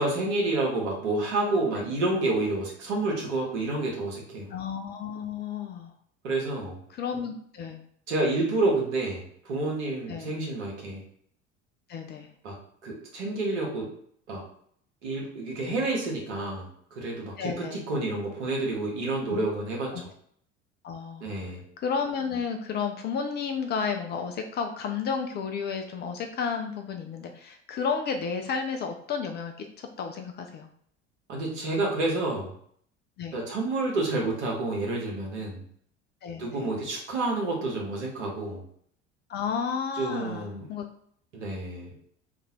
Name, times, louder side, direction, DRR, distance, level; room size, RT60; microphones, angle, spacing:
voice 1, 0.0-4.5 6.2-6.8 8.1-11.0 12.4-12.5 12.8-13.9 14.3-14.4 15.0-16.7 16.9-19.9 21.2-21.6 31.3-32.5 33.3-35.6 36.4-38.6 40.0-40.6 41.3-41.9, right 2 dB, 65° right, -2 dB, 1.3 m, -29 dB
voice 2, 4.5-5.9 6.9-7.8 10.1-10.3 11.9-12.3 15.6-15.8 17.4-17.8 19.3-19.4 19.9-20.0 20.8-21.3 21.8-30.7 33.2-33.4 36.2-36.7 39.3-40.9, left 6 dB, 30° left, 4 dB, 0.4 m, -32 dB
3.0 x 2.6 x 4.1 m, 0.63 s
figure-of-eight pair, 65°, 37 cm